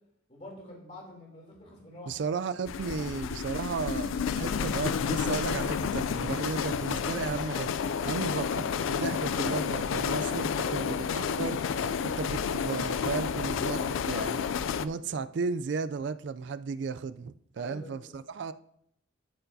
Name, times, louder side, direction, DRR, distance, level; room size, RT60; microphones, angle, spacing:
voice 1, 0.3-3.1 17.6-18.1, left 1 dB, 35° left, 2.9 m, -47 dB
voice 2, 2.1-11.6 12.0-14.5 14.8-18.5, right 5 dB, 60° right, 0.3 m, -34 dB
sound 1, 2.7-14.9, left 6 dB, 85° left, 0.4 m, -30 dB
12.5 x 6.8 x 2.7 m
head